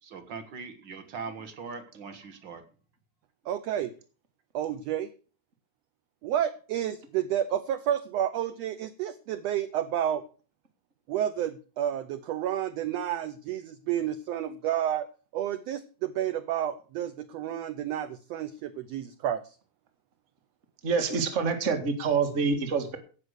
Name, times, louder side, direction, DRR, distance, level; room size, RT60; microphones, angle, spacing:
voice 1, 0.0-2.6, right 5 dB, 45° right, 9 dB, 1.6 m, -41 dB
voice 2, 3.5-3.9 4.5-5.1 6.2-10.2 11.1-15.1 15.3-19.5, right 10 dB, 75° right, 11 dB, 1.5 m, -30 dB
voice 3, 20.8-23.0, right 5 dB, 30° right, 6 dB, 1.5 m, -26 dB
16.0 x 5.9 x 6.5 m, 0.38 s
omnidirectional pair, 3.7 m